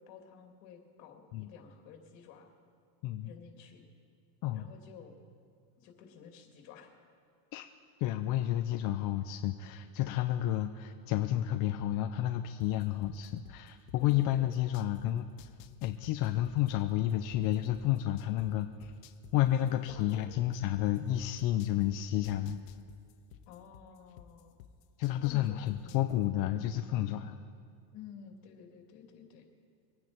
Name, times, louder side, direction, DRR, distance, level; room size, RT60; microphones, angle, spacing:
voice 1, 0.0-2.5 3.2-3.8 4.5-5.1 5.8-6.9 14.0-14.5 19.6-20.3 23.5-24.6 25.2-25.6 25.8-26.0 27.1-27.4 27.9-29.5, left 7 dB, 60° left, 2 dB, 2.8 m, -52 dB
voice 2, 8.0-15.3 15.8-18.9 19.3-22.6 25.0-27.4, left 13 dB, 40° left, 6 dB, 0.6 m, -31 dB
sound 1, 12.6-15.0 15.4-18.5 18.8-21.9 22.2-25.3 25.7-26.2, left 14 dB, 75° left, 1.1 m, -53 dB
24.0 x 9.7 x 4.5 m, 2.3 s
supercardioid pair, 140°, 49 cm